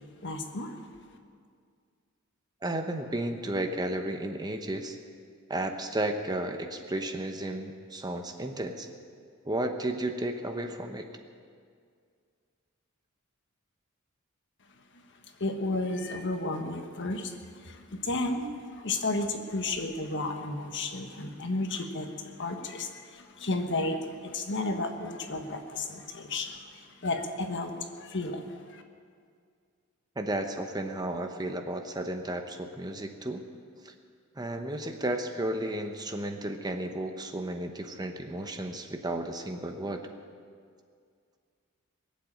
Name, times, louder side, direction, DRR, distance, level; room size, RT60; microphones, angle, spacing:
voice 1, 0.2-0.8 14.9-28.8, left 2 dB, 55° left, 5 dB, 1.4 m, -33 dB
voice 2, 2.6-5.0 5.5-8.9 9.4-11.1 30.2-33.4 33.8-33.9 34.4-40.1, right 1 dB, 20° right, 6 dB, 0.9 m, -33 dB
21.0 x 7.6 x 8.8 m, 2.2 s
head